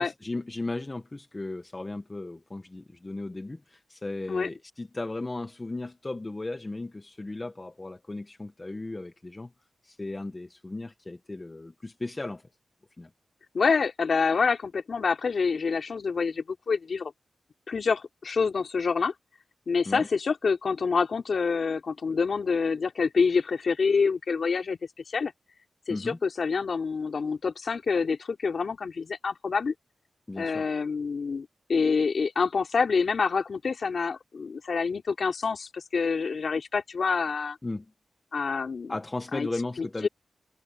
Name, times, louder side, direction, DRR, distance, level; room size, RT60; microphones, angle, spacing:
voice 1, 0.0-9.5 9.8-12.4 13.0-13.1 19.8-20.1 25.9-26.2 30.3-30.7 37.6-37.9 38.9-40.1, left 2 dB, 25° left, 1.4 m, -36 dB
voice 2, 13.5-17.1 17.7-19.1 19.7-24.8 25.1-25.3 25.9-29.7 30.4-37.6 38.3-38.9 39.3-39.5 39.8-40.1, left 5 dB, 60° left, 3.8 m, -27 dB
wide cardioid pair, 85°, 0 cm